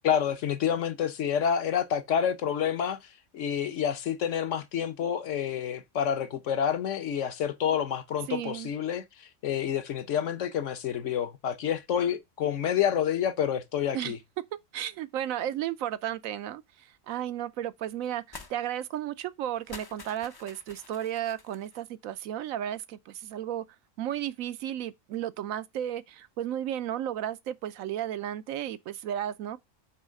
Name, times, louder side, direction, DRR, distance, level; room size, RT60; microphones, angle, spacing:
voice 1, 0.0-3.0 3.3-9.0 9.4-14.2, left 8 dB, 65° left, 1.1 m, -28 dB
voice 2, 8.3-8.7 13.9-14.1 14.7-18.2 18.5-23.6 24.0-29.6, right 11 dB, 85° right, 1.0 m, -33 dB
sound 1, 18.3-18.6 18.9-19.0 19.5-21.8, left 3 dB, 35° left, 0.3 m, -47 dB
8.2 x 3.2 x 6.3 m
omnidirectional pair, 1.4 m